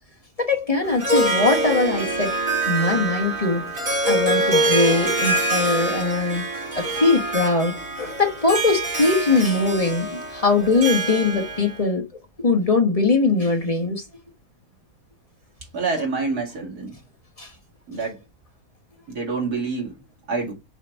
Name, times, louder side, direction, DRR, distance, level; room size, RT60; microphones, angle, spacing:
voice 1, 0.4-2.3 2.7-3.7 4.0-6.4 6.7-12.1 12.4-14.0 17.4-17.5, left 3 dB, 25° left, 1.2 m, -21 dB
Harp, 0.8-11.8, right 2 dB, 60° right, 3.7 m, -25 dB
voice 2, 15.7-16.9 17.9-18.2 19.1-20.0 20.3-20.5, right 4 dB, 80° right, 3.0 m, -27 dB
6.2 x 3.7 x 4.6 m
omnidirectional pair, 1.6 m